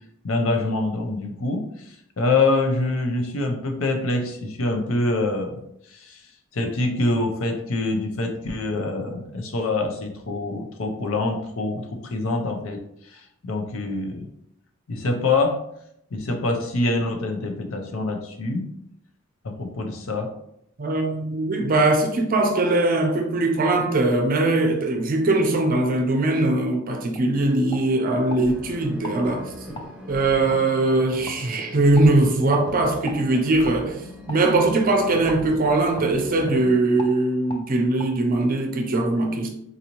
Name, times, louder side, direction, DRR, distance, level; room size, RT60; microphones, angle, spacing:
voice 1, 0.2-5.6 5.9-6.2 6.5-12.8 13.0-14.3 14.9-15.6 16.1-18.7 19.4-20.3, left 2 dB, 70° left, 0.6 m, -25 dB
voice 2, 20.8-29.8 30.1-39.5, right 2 dB, 40° right, 0.6 m, -21 dB
sound 1, 26.5-26.7 27.1-27.3 27.7-28.4 29.0-29.2 29.7-29.9 30.5-30.6 31.3-31.4 31.9-32.1 32.5-32.7 33.1-33.2 33.6-33.8 34.3-34.4 35.3-35.4 36.0-36.1 36.4-36.6 37.0-37.1 37.5-37.6 38.0-38.1, left 2 dB, 20° left, 0.4 m, -36 dB
sound 2, 28.4-36.8, equal, 5° right, 0.9 m, -40 dB
3.9 x 2.7 x 2.9 m
head